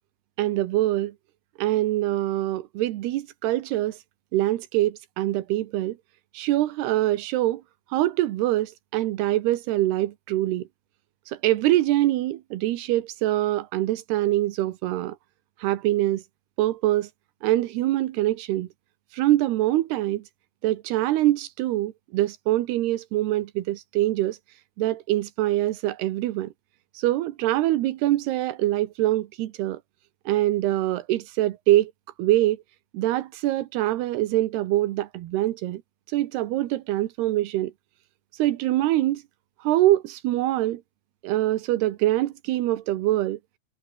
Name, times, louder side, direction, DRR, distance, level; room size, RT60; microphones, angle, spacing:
voice 1, 0.4-1.1 1.6-4.0 4.3-6.0 6.3-7.6 7.9-10.7 11.3-15.2 15.6-16.2 16.6-17.1 17.4-18.7 19.1-20.2 20.6-24.4 24.8-26.5 26.9-29.8 30.3-31.9 32.2-32.6 32.9-35.8 36.1-37.7 38.3-39.2 39.6-40.8 41.2-43.4, right 15 dB, 85° right, 3.2 m, -24 dB
omnidirectional pair, 4.6 m